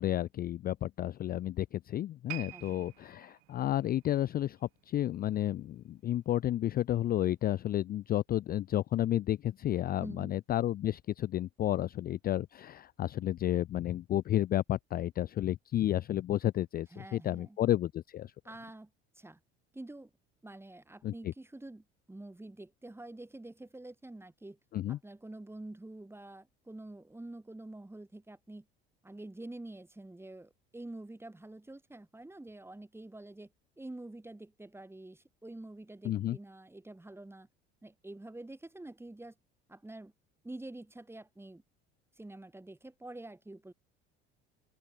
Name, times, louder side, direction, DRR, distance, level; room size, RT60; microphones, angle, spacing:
voice 1, 0.0-18.3 21.0-21.1 24.7-25.0 36.0-36.4, left 12 dB, 30° left, 0.5 m, -31 dB
sound 1, 2.3-5.6 5.9-6.2 6.8-6.9, right 30 dB, 60° right, 2.0 m, -49 dB
voice 2, 2.5-2.9 10.0-10.3 16.9-17.6 18.4-18.9 19.2-19.4 19.7-20.1 20.4-24.6 24.9-28.7 29.0-33.5 33.8-37.5 37.8-39.3 39.7-40.1 40.4-41.6 42.2-43.7, right 2 dB, 10° right, 2.2 m, -47 dB
open air
figure-of-eight pair, 60°, 32 cm